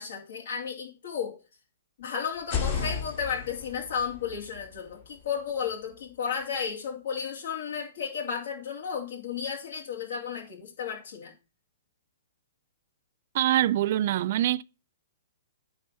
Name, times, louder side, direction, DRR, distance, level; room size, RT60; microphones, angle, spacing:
voice 1, 0.0-1.4 2.0-11.3, left 7 dB, 70° left, 2.7 m, -33 dB
sound 1, 2.3-6.2, left 6 dB, 45° left, 3.2 m, -35 dB
voice 2, 13.3-14.6, right 13 dB, 50° right, 0.4 m, -24 dB
9.3 x 3.5 x 6.9 m
hypercardioid pair, 150°, 0 cm